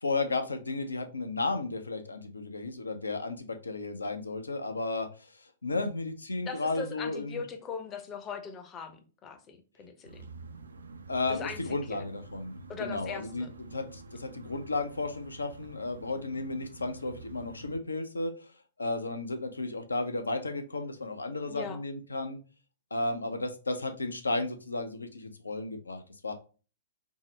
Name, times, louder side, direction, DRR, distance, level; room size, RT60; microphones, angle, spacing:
voice 1, 0.0-7.4 11.1-18.5 18.8-22.4 22.9-26.3, left 3 dB, 75° left, 7 dB, 0.5 m, -34 dB
voice 2, 6.5-10.3 11.3-12.0 12.7-13.5 21.5-21.8, left 5 dB, 25° left, 7 dB, 0.5 m, -40 dB
sound 1, 10.0-17.8, right 3 dB, 70° right, 0.3 m, -48 dB
3.5 x 2.0 x 3.1 m, 0.36 s
figure-of-eight pair, 110°, 0 cm